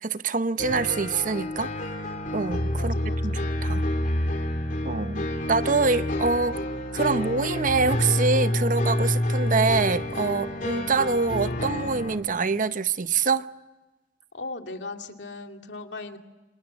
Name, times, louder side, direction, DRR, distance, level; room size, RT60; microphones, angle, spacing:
voice 1, 0.0-1.7 2.3-3.0 3.2-3.9 4.8-6.6 6.9-13.5, right 4 dB, 50° right, 0.8 m, -25 dB
sound 1, 0.6-12.2, left 1 dB, 50° left, 3.1 m, -28 dB
voice 2, 2.7-3.4 4.8-5.4 14.3-16.2, left 3 dB, 90° left, 2.3 m, -39 dB
27.5 x 26.5 x 7.2 m
head